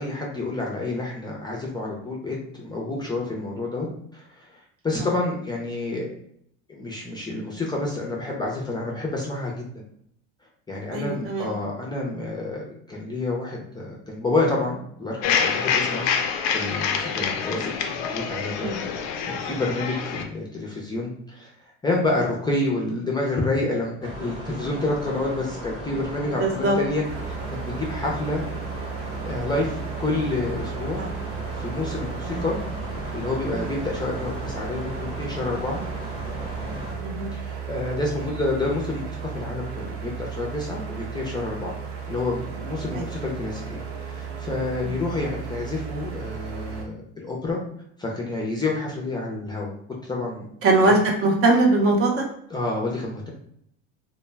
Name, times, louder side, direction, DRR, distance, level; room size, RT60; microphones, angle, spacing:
voice 1, 0.0-3.9 4.1-4.5 4.8-6.1 6.7-9.5 10.7-18.9 19.2-21.5 21.8-23.9 24.2-28.4 29.2-31.0 31.5-32.6 32.9-35.8 37.3-39.1 39.3-41.7 42.1-47.6 48.0-49.7 50.0-50.4 52.5-53.3, left 2 dB, 15° left, -2 dB, 0.5 m, -28 dB
voice 2, 10.9-11.5 18.6-18.8 19.4-19.5 26.4-26.8 31.0-31.1 32.2-32.4 37.0-37.3 42.9-43.0 44.8-44.9 50.6-52.2, right 2 dB, 40° right, 1 dB, 0.6 m, -21 dB
sound 1, 15.2-20.2, left 6 dB, 80° left, 0.5 m, -26 dB
sound 2, 24.0-36.9, equal, 20° right, 0.9 m, -37 dB
sound 3, 27.0-46.8, right 6 dB, 75° right, 0.8 m, -34 dB
2.2 x 2.1 x 3.2 m, 0.69 s
supercardioid pair, 110°, 34 cm